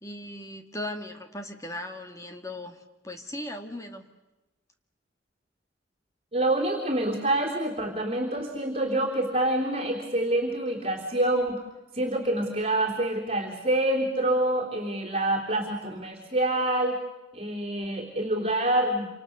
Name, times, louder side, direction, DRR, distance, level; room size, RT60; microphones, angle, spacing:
voice 1, 0.0-4.0, left 1 dB, 15° left, 5 dB, 1.7 m, -38 dB
voice 2, 6.3-11.6 11.9-16.9 17.3-19.1, right 1 dB, 30° right, 0 dB, 3.4 m, -26 dB
29.0 x 26.0 x 6.8 m, 1.1 s
head